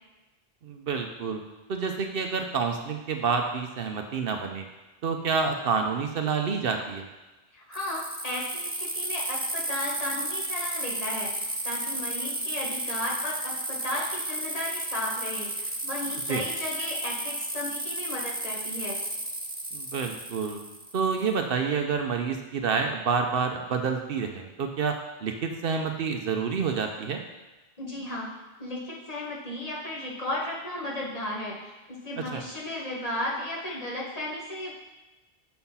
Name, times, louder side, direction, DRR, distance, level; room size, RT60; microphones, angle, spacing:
voice 1, 0.6-1.4 1.7-4.7 5.0-7.1 16.3-16.4 19.7-20.6 20.9-27.2 32.2-32.4, right 5 dB, 65° right, 4 dB, 0.8 m, -28 dB
voice 2, 7.5-19.0 27.8-28.3 28.6-34.7, left 1 dB, 35° left, -4 dB, 1.4 m, -34 dB
sound 1, 7.7-21.3, right 1 dB, 15° right, 0.4 m, -33 dB
6.8 x 4.3 x 5.5 m, 1.1 s
omnidirectional pair, 1.1 m